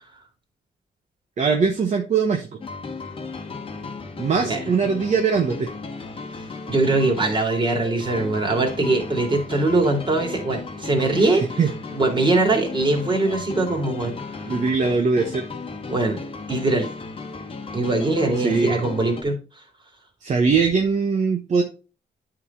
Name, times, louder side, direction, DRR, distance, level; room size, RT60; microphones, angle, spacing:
voice 1, 1.4-2.6 4.2-5.7 11.2-11.3 11.6-11.7 14.5-15.4 18.4-18.9 20.2-21.6, right 5 dB, 50° right, 3 dB, 1.0 m, -21 dB
sound 1, 2.6-19.2, left 4 dB, 35° left, 1.1 m, -35 dB
voice 2, 6.7-11.6 11.9-14.4 15.9-16.2 16.5-16.9 17.7-19.4, right 2 dB, 30° right, 2 dB, 2.5 m, -22 dB
8.9 x 4.0 x 4.2 m, 0.34 s
cardioid pair, 90°, 16 cm